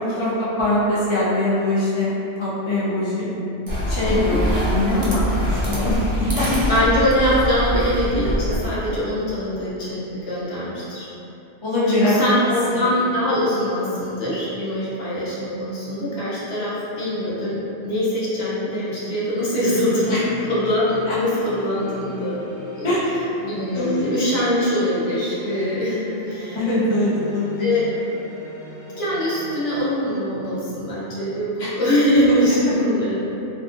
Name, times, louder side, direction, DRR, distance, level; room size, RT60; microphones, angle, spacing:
voice 1, 0.0-2.1 2.4-3.3 3.9-6.8 11.6-12.3 12.7-12.9 20.1-20.2 21.1-21.2 22.8-23.1 23.7-24.1 26.5-27.7 31.6-31.7, left 1 dB, 40° left, -9 dB, 0.4 m, -22 dB
sound 1, 3.7-9.0, equal, 60° right, 0.3 m, -24 dB
voice 2, 4.0-4.4 6.7-11.1 11.9-20.2 20.5-22.4 22.8-22.9 23.4-26.6 27.6-27.9 29.0-33.3, left 1 dB, 60° left, -9 dB, 0.9 m, -23 dB
sound 2, 19.5-29.8, equal, 20° right, 0.7 m, -39 dB
2.5 x 2.5 x 2.4 m, 2.9 s
omnidirectional pair, 1.2 m